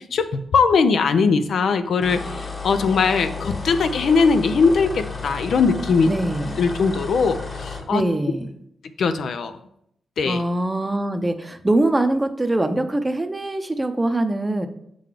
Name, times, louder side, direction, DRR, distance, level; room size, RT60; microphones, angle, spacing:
voice 1, 0.0-6.1 6.6-8.0 9.0-9.6 10.2-10.4, left 5 dB, 75° left, 10 dB, 0.5 m, -20 dB
sound 1, 2.0-7.9, left 4 dB, 35° left, 1.5 m, -32 dB
voice 2, 6.1-6.6 7.9-8.5 10.2-14.7, right 1 dB, 20° right, 8 dB, 0.6 m, -23 dB
6.7 x 3.9 x 4.9 m, 0.74 s
cardioid pair, 80°, 0 cm